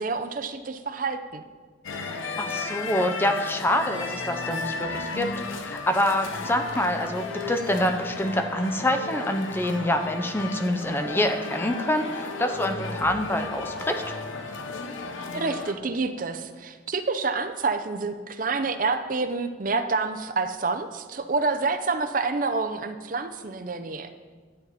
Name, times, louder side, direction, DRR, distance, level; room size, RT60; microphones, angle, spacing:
voice 1, 0.0-1.4 15.3-24.1, right 4 dB, 45° right, 9 dB, 0.6 m, -28 dB
sound 1, 1.8-15.7, left 3 dB, 80° left, 0.9 m, -34 dB
voice 2, 2.4-14.0, left 1 dB, 10° left, 6 dB, 0.5 m, -26 dB
11.0 x 9.3 x 4.1 m, 1.5 s
head